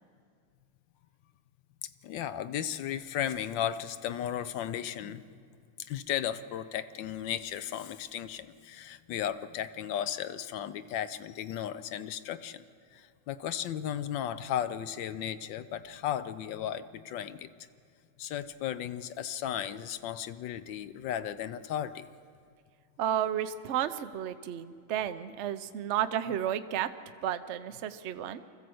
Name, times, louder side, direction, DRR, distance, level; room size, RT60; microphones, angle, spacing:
voice 1, 1.8-5.2 5.9-12.6 12.9-17.5 18.2-22.1, left 10 dB, 70° left, 13 dB, 1.3 m, -35 dB
voice 2, 23.0-26.9 27.2-28.4, right 10 dB, 75° right, 11 dB, 0.6 m, -32 dB
24.5 x 15.0 x 7.8 m, 2.2 s
omnidirectional pair, 2.2 m